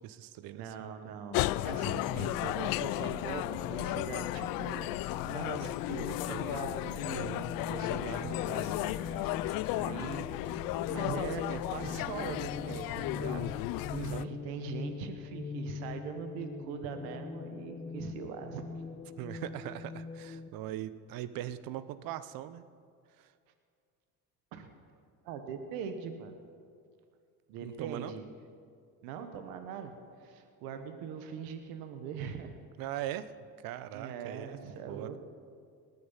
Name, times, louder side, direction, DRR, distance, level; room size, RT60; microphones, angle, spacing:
voice 1, 0.0-0.9 7.0-7.5 13.9-14.3 19.2-22.6 23.2-23.3 27.6-28.1 32.8-33.3 33.6-34.6 34.9-35.2, right 12 dB, 70° right, 14 dB, 0.8 m, -40 dB
voice 2, 0.5-4.9 5.2-7.3 7.7-10.3 10.9-18.6 20.7-20.9 24.5-24.7 25.2-26.3 27.5-28.2 29.0-29.9 30.2-32.6 33.9-35.2, right 7 dB, 85° right, 7 dB, 1.3 m, -42 dB
sound 1, 1.3-14.2, left 17 dB, 75° left, 0.5 m, -34 dB
sound 2, 1.3-20.5, left 4 dB, 15° left, 0.5 m, -43 dB
19.0 x 9.5 x 5.6 m, 2.2 s
cardioid pair, 100°, 35 cm